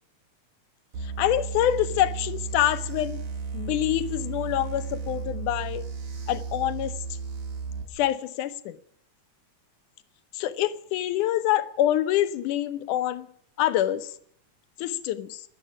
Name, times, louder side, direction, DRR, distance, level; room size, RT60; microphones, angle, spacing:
sound 1, 0.9-7.8, right 5 dB, 75° right, 4.2 m, -34 dB
voice 1, 1.0-3.2 3.5-5.8 6.3-6.9 7.9-8.8 10.3-13.3 13.6-14.1 14.8-15.4, left 12 dB, 85° left, 2.4 m, -26 dB
13.5 x 9.7 x 10.0 m
omnidirectional pair, 3.5 m